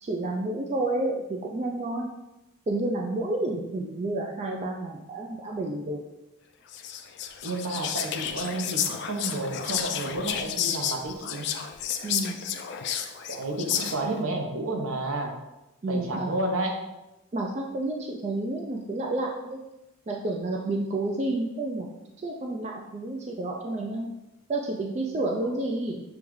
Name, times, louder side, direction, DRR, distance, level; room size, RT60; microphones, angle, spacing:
voice 1, 0.0-2.1 2.7-6.0 12.0-12.4 15.8-16.3 17.3-19.6 20.1-21.9 22.2-24.1 24.5-26.0, right 2 dB, 30° right, 0 dB, 0.3 m, -30 dB
Whispering, 6.7-14.2, left 9 dB, 55° left, 0.3 m, -31 dB
voice 2, 7.4-11.5 13.3-15.3 15.9-16.8, right 2 dB, 75° right, 2 dB, 0.8 m, -31 dB
6.9 x 2.4 x 3.1 m, 0.96 s
head